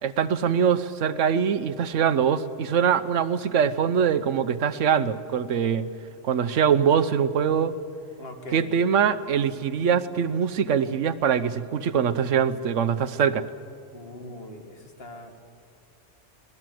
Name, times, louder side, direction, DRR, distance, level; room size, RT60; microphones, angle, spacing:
voice 1, 0.0-5.8 6.2-7.7 8.5-13.5, right 7 dB, 85° right, 13 dB, 1.2 m, -23 dB
voice 2, 8.2-8.7 13.9-15.3, left 2 dB, 55° left, 5 dB, 2.1 m, -41 dB
24.0 x 18.5 x 7.7 m, 2.3 s
omnidirectional pair, 1.2 m